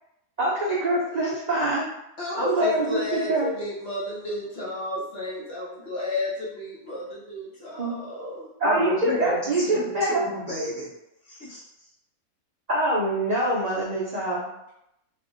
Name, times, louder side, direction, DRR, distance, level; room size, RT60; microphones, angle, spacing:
voice 1, 0.4-1.9 2.4-3.5 7.8-7.9 8.6-10.2 12.7-14.5, right 1 dB, 55° right, -6 dB, 0.4 m, -24 dB
voice 2, 2.2-8.5, left 2 dB, 50° left, -6 dB, 1.2 m, -32 dB
voice 3, 8.6-10.9 11.3-11.6, equal, 70° left, -8 dB, 1.7 m, -30 dB
3.4 x 2.5 x 2.5 m, 0.82 s
omnidirectional pair, 1.5 m